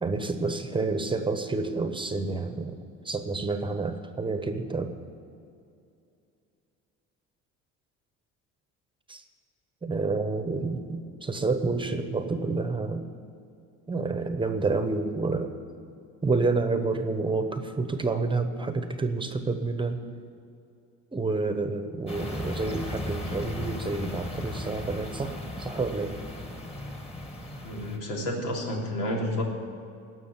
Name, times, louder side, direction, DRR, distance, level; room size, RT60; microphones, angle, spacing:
voice 1, 0.0-2.8 3.0-4.9 9.1-9.2 9.8-13.0 13.9-15.5 16.2-20.0 21.1-26.2, right 3 dB, 15° right, 8 dB, 0.9 m, -29 dB
sound 1, 22.1-28.0, left 1 dB, 20° left, 1.8 m, -36 dB
voice 2, 27.6-29.4, left 1 dB, 90° left, -1 dB, 3.4 m, -30 dB
18.5 x 6.3 x 9.5 m, 2.6 s
cardioid pair, 130°, 31 cm